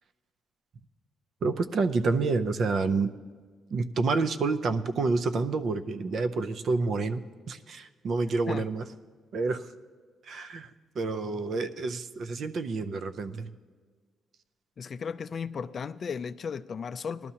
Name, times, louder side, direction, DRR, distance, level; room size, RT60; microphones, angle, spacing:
voice 1, 1.4-3.1 3.7-7.2 7.5-8.9 9.3-9.7 10.2-13.5, right 3 dB, 55° right, 0.5 m, -28 dB
voice 2, 14.8-17.3, left 6 dB, 45° left, 0.3 m, -35 dB
18.5 x 12.0 x 2.8 m
cardioid pair, 90°, 0 cm